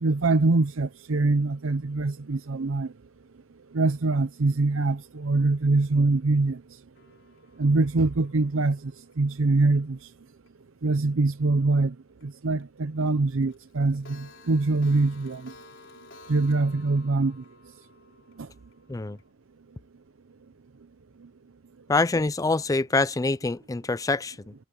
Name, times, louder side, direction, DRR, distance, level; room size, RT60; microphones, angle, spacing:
voice 1, 0.0-2.9 3.7-6.6 7.6-10.1 10.8-12.0 12.2-15.5 16.3-17.4 18.4-18.5 21.2-21.3, right 3 dB, 70° right, 0.7 m, -24 dB
Clock, 7.0-10.0 10.5-10.6 10.9-11.0 11.3-11.4 11.7-11.8 12.2-12.3 12.6-12.7 13.0-13.1 13.4-19.3, left 3 dB, 60° left, 5.8 m, -53 dB
voice 2, 21.9-24.5, left 3 dB, 15° left, 0.4 m, -25 dB
head